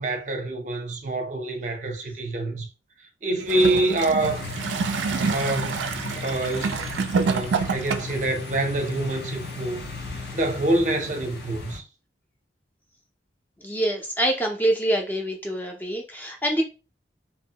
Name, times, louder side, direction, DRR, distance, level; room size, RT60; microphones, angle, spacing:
voice 1, 0.0-2.7 3.0-4.4 5.2-5.9 6.1-6.7 7.2-9.8 10.3-11.8, right 2 dB, 40° right, 0.6 m, -26 dB
Gurgling / Toilet flush, 3.4-8.3 9.1-9.2, right 5 dB, 90° right, 0.3 m, -27 dB
sound 1, 4.2-11.8, left 3 dB, 70° left, 0.7 m, -35 dB
voice 2, 13.6-16.6, right 1 dB, 10° left, 0.4 m, -25 dB
2.9 x 2.0 x 2.7 m
head